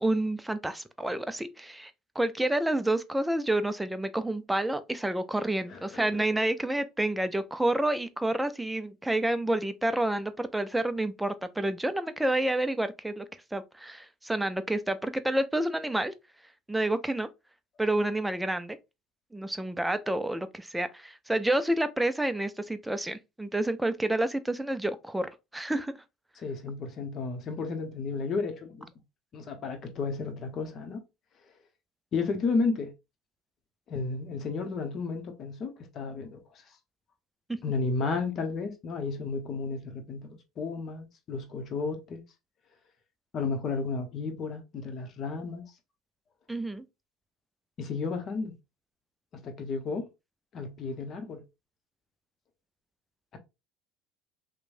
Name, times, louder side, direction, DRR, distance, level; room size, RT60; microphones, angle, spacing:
voice 1, 0.0-1.9 2.2-13.2 13.5-16.1 16.7-17.3 17.8-18.8 19.3-26.0 46.5-46.8, right 1 dB, 5° right, 0.4 m, -29 dB
voice 2, 5.7-6.0 26.4-28.9 29.3-31.0 32.1-32.9 33.9-36.4 37.6-42.2 43.3-45.7 47.8-48.5 49.3-50.0 50.5-51.4, left 4 dB, 45° left, 0.8 m, -32 dB
3.0 x 2.1 x 2.5 m
hypercardioid pair, 75°, 0 cm